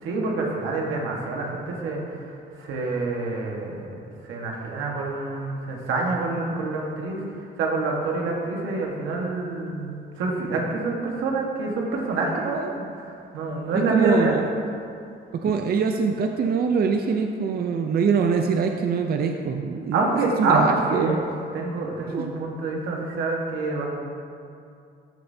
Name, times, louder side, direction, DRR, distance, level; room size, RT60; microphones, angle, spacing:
voice 1, 0.0-3.9 4.3-14.4 19.9-21.2 21.5-23.9, right 3 dB, 90° right, -1 dB, 1.5 m, -26 dB
voice 2, 13.7-14.4 15.3-20.0 20.4-21.2 22.1-22.3, right 5 dB, 50° right, 4 dB, 0.5 m, -23 dB
14.0 x 6.6 x 2.8 m, 2.5 s
cardioid pair, 90°, 20 cm